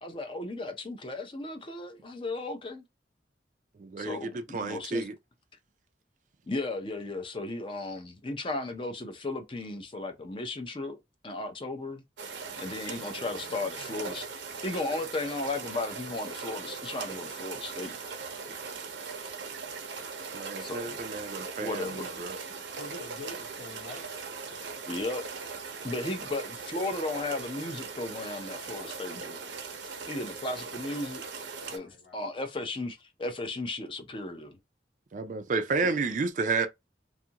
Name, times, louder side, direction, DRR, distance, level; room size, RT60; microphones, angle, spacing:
voice 1, 0.0-2.8 4.0-5.1 6.5-12.0 12.6-14.3 14.6-18.0 20.6-21.0 21.6-22.1 24.9-25.2 25.8-29.4 30.1-31.2 31.7-34.6 35.8-35.9, left 2 dB, 30° left, 0.5 m, -35 dB
voice 2, 3.8-5.1 20.3-22.4 35.1-36.7, right 4 dB, 45° right, 0.3 m, -31 dB
sound 1, 12.2-31.8, right 5 dB, 90° right, 0.6 m, -40 dB
voice 3, 22.8-24.1 31.6-32.2, left 2 dB, 70° left, 0.9 m, -46 dB
2.6 x 2.4 x 2.8 m
head